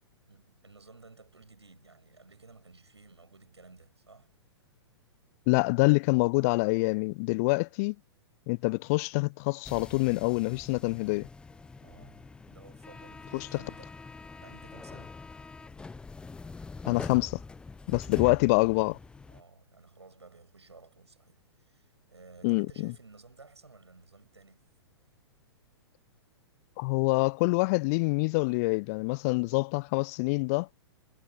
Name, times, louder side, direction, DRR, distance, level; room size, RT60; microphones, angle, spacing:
voice 1, 0.3-4.3 11.8-13.9 14.4-15.2 17.9-18.3 19.3-24.7, right 3 dB, 75° right, 6.5 m, -55 dB
voice 2, 5.5-8.0 8.5-11.3 16.9-17.4 17.9-19.0 22.4-22.9 26.8-30.7, left 28 dB, 35° left, 0.8 m, -26 dB
sound 1, 9.6-19.4, left 4 dB, 5° left, 0.5 m, -44 dB
figure-of-eight pair, 105°, 14 cm